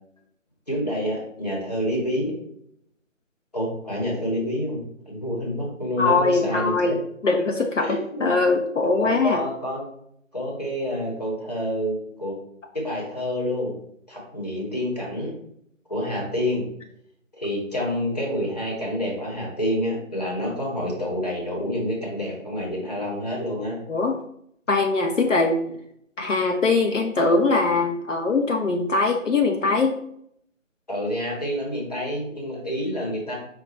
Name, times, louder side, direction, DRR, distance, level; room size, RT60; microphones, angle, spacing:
voice 1, 0.7-2.3 3.5-7.0 7.8-8.4 9.0-9.8 10.3-12.4 12.7-13.7 14.1-15.3 15.9-16.6 17.4-23.8 30.9-33.3, equal, 30° left, -3 dB, 1.0 m, -28 dB
voice 2, 6.0-7.0 7.2-7.9 8.2-9.4 23.9-24.2 24.7-25.6 26.2-30.0, left 3 dB, 70° left, 2 dB, 0.6 m, -21 dB
5.1 x 2.2 x 4.3 m, 0.71 s
figure-of-eight pair, 175°, 40 cm